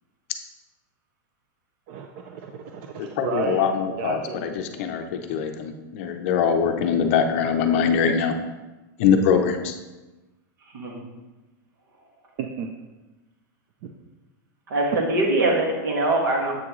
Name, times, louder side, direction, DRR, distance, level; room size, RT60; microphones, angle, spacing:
voice 1, 1.9-3.6 4.0-4.4 12.4-12.7 13.8-13.9, right 6 dB, 35° right, 3 dB, 0.4 m, -32 dB
voice 2, 3.0-8.4 9.0-9.8, left 6 dB, 40° left, 6 dB, 0.5 m, -23 dB
voice 3, 14.7-16.5, right 2 dB, 75° right, 0 dB, 1.9 m, -22 dB
7.7 x 6.0 x 3.1 m, 1.1 s
supercardioid pair, 175°, 11 cm